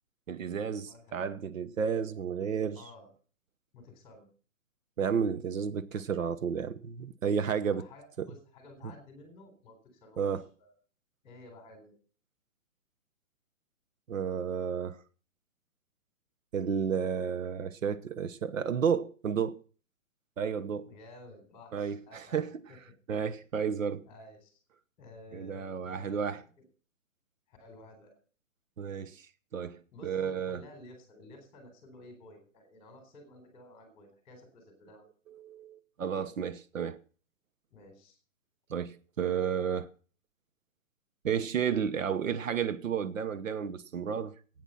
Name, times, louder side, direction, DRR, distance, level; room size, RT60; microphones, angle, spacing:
voice 1, 0.3-2.8 5.0-7.9 8.2-8.3 10.2-10.5 14.1-15.0 16.5-19.6 20.4-20.9 21.7-22.5 23.1-24.1 25.3-26.4 28.8-29.3 29.5-30.6 35.3-37.0 38.7-39.9 41.2-44.3, right 7 dB, 75° right, 1.1 m, -32 dB
voice 2, 0.9-1.2 2.8-3.1 3.7-4.3 7.7-10.3 10.6-10.7 11.2-11.9 20.8-22.4 22.7-22.8 24.1-24.6 25.0-26.5 27.5-28.2 29.9-35.0 37.7-38.2, left 2 dB, 15° left, 3.9 m, -53 dB
12.5 x 9.3 x 5.7 m
hypercardioid pair, 170°, 39 cm